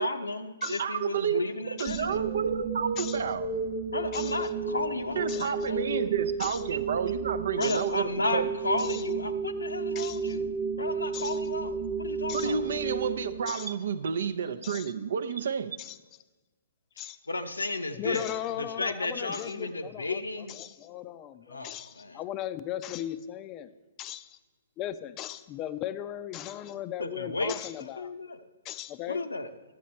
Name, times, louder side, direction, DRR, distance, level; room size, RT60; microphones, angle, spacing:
voice 1, 0.0-2.2 3.9-6.0 7.6-10.5 10.8-12.6 17.3-18.2 18.6-20.5 21.5-22.2 27.0-27.5 28.0-28.4 29.1-29.5, left 2 dB, 80° left, 8 dB, 0.7 m, -33 dB
voice 2, 0.6-1.4 1.8-3.5 5.2-8.5 12.3-15.8, right 7 dB, 60° right, 12 dB, 0.5 m, -30 dB
sound 1, 1.9-13.9, right 5 dB, 30° right, 0.9 m, -33 dB
voice 3, 9.9-10.4 11.1-11.4 12.3-12.5 13.5-13.7 14.6-14.9 15.8-16.0 17.0-17.2 17.9-23.7 24.0-24.4 24.8-28.1 28.6-29.3, left 12 dB, 25° left, 13 dB, 0.5 m, -38 dB
11.5 x 7.4 x 4.3 m, 1.2 s
figure-of-eight pair, 120°, 0 cm